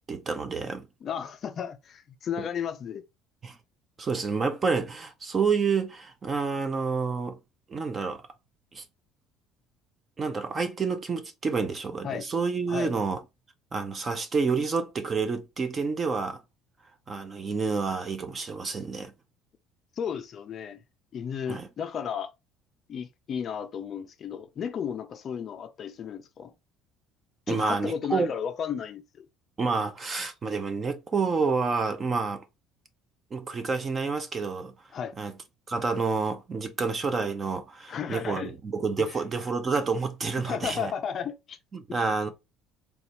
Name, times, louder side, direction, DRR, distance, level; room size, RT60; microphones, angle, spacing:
voice 1, 0.0-0.9 3.4-3.6 4.0-7.4 7.7-8.2 8.7-8.8 10.2-13.2 13.7-16.4 17.1-19.1 21.5-21.7 27.5-28.3 29.6-32.4 33.3-34.7 35.2-35.3 35.7-40.9 41.7-42.3, right 4 dB, 20° right, 0.5 m, -29 dB
voice 2, 1.0-3.0 12.0-12.3 12.7-12.9 20.0-20.8 21.1-22.3 22.9-26.5 27.5-29.3 34.9-35.1 37.9-38.5 39.0-39.2 40.4-41.6 41.9-42.0, left 8 dB, 35° left, 0.4 m, -34 dB
4.0 x 2.3 x 2.8 m
cardioid pair, 165°, 0 cm